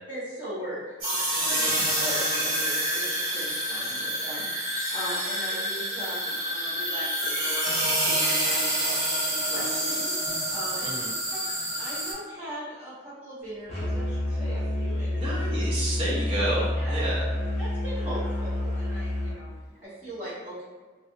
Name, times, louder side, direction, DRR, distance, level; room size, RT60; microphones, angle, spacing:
voice 1, 0.1-1.7 2.0-10.9 11.3-11.4 11.7-15.2 16.7-17.0 17.6-19.5 19.8-20.6, right 1 dB, 10° right, -14 dB, 1.0 m, -39 dB
sound 1, 1.0-12.1, right 1 dB, 45° right, 0.9 m, -27 dB
Musical instrument, 13.7-19.4, left 1 dB, 35° left, 0.5 m, -28 dB
voice 2, 15.1-17.2, right 1 dB, 25° right, -8 dB, 0.6 m, -30 dB
2.4 x 2.4 x 2.6 m, 1.4 s
head